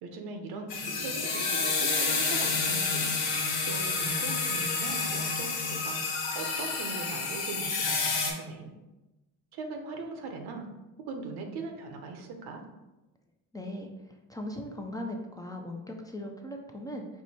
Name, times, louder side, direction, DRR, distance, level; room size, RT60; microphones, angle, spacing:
voice 1, 0.0-3.1 3.6-6.0 6.3-8.7 9.5-10.6 11.1-12.6, right 3 dB, 85° right, 4 dB, 0.8 m, -40 dB
sound 1, 0.7-8.3, left 4 dB, 75° left, 1.2 m, -29 dB
voice 2, 13.5-13.9 14.3-17.1, left 1 dB, 10° left, 1 dB, 0.4 m, -38 dB
4.7 x 2.1 x 4.1 m, 1.0 s
cardioid pair, 100°, 38 cm